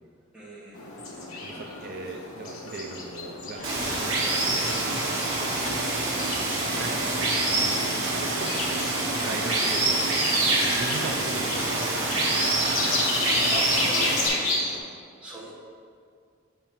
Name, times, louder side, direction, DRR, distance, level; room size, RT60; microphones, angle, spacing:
voice 1, 0.3-0.8 13.5-14.5 15.2-15.5, equal, 5° right, -7 dB, 1.0 m, -40 dB
sound 1, 0.7-14.8, left 2 dB, 85° left, 1.0 m, -32 dB
voice 2, 1.4-3.7 3.9-4.7 6.7-8.6 9.1-13.2, right 3 dB, 50° right, 2 dB, 0.4 m, -39 dB
sound 2, 3.5-5.9 6.7-13.1, left 1 dB, 35° left, 0.5 m, -40 dB
Water, 3.6-14.3, right 2 dB, 75° right, 1.2 m, -26 dB
7.0 x 5.6 x 2.9 m, 2.2 s
head